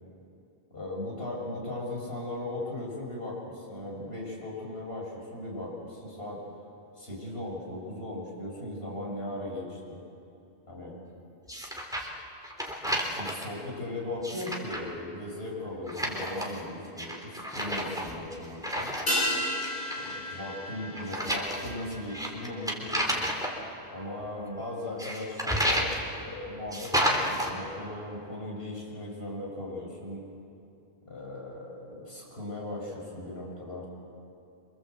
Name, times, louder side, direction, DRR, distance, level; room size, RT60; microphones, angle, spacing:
voice 1, 0.7-6.4 6.9-10.0 10.7-11.0 12.8-18.9 20.0-23.2 23.9-30.2 31.1-33.9, left 1 dB, 65° left, -3 dB, 6.7 m, -38 dB
sound 1, 11.5-12.2 12.4-13.4 14.1-14.9 15.9-16.6 17.0-19.3 19.6-20.1 21.0-23.5 25.0-26.0 26.7-27.5, equal, 5° right, 3.5 m, -31 dB
sound 2, 19.1-23.8 24.0-24.1, left 1 dB, 45° left, 6.6 m, -34 dB
27.5 x 25.5 x 8.1 m, 2.6 s
omnidirectional pair, 1.1 m